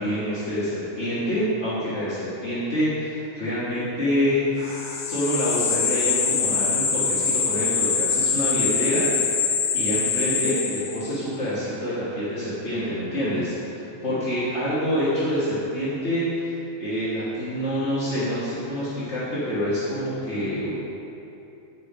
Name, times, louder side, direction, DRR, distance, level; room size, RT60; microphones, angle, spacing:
voice 1, 0.0-20.7, equal, 60° left, -11 dB, 2.0 m, -27 dB
sound 1, 4.7-11.2, left 6 dB, 90° left, 1.3 m, -24 dB
9.8 x 5.2 x 5.1 m, 2.9 s
omnidirectional pair, 1.4 m